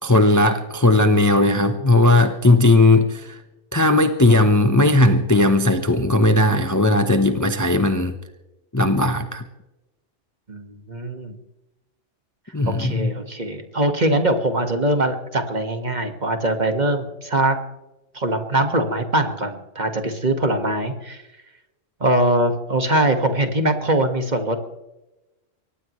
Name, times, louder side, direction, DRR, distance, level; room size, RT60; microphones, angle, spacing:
voice 1, 0.0-3.4 3.7-8.2 8.7-9.4 12.5-13.1, left 2 dB, 15° left, 7 dB, 0.9 m, -17 dB
voice 2, 10.5-11.4 12.7-17.6 18.1-21.2 22.0-24.6, right 1 dB, 35° right, 6 dB, 1.9 m, -22 dB
23.0 x 19.0 x 3.2 m, 1.0 s
omnidirectional pair, 1.3 m